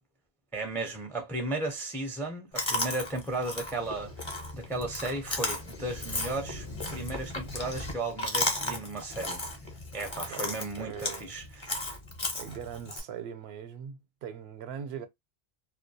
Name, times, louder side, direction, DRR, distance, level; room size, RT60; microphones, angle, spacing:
voice 1, 0.5-6.7 6.9-9.4 9.9-11.9, right 2 dB, 5° left, 0.3 m, -35 dB
Chewing mastication, 2.5-13.0, left 2 dB, 30° left, 0.7 m, -35 dB
voice 2, 10.3-11.3 12.3-15.1, right 8 dB, 90° right, 0.8 m, -41 dB
2.3 x 2.1 x 2.6 m
omnidirectional pair, 1.0 m